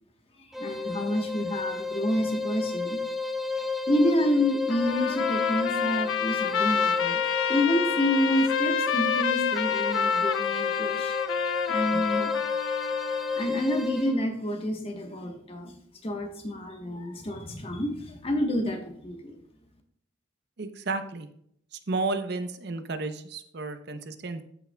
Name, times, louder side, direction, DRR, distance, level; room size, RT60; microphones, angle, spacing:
sound 1, 0.5-14.2, left 4 dB, ahead, 0.4 m, -32 dB
voice 1, 0.6-3.0 3.9-7.2 7.5-11.2 11.7-12.3 13.3-15.8 16.0-19.3, left 1 dB, 30° left, 4 dB, 1.1 m, -28 dB
Trumpet, 4.7-13.5, left 7 dB, 80° left, 0.4 m, -28 dB
voice 2, 20.6-21.3 21.7-24.4, right 3 dB, 55° right, 9 dB, 0.6 m, -32 dB
14.0 x 5.7 x 2.2 m, 0.69 s
head